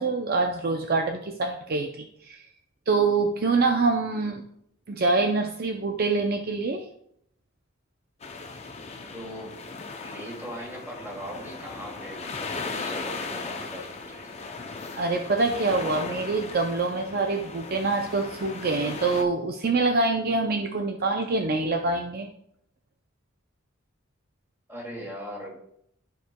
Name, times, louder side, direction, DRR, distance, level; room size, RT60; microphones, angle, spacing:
voice 1, 0.0-2.4 2.9-4.4 4.9-6.9 14.9-22.3, right 3 dB, 45° right, 4 dB, 0.5 m, -25 dB
sound 1, 8.2-19.2, left 4 dB, 30° left, 0.5 m, -37 dB
voice 2, 9.1-9.6 10.0-14.4 24.7-25.5, equal, 10° right, -4 dB, 2.4 m, -40 dB
13.0 x 4.6 x 2.3 m, 0.72 s
head